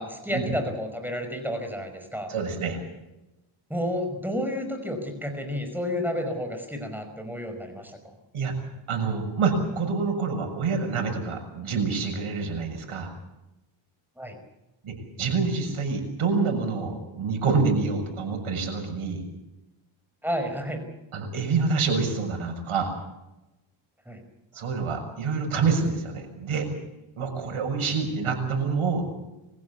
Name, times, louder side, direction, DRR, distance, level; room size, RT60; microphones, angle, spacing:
voice 1, 0.0-2.3 3.7-8.0 14.2-14.4 20.2-20.8 24.1-24.2, equal, 5° right, 6 dB, 5.4 m, -31 dB
voice 2, 2.3-2.8 8.3-8.5 8.9-13.1 14.8-19.2 21.1-22.9 24.5-26.7 27.2-29.1, right 4 dB, 75° right, 3 dB, 6.8 m, -27 dB
24.5 x 16.0 x 8.4 m, 0.98 s
cardioid pair, 100°, 50 cm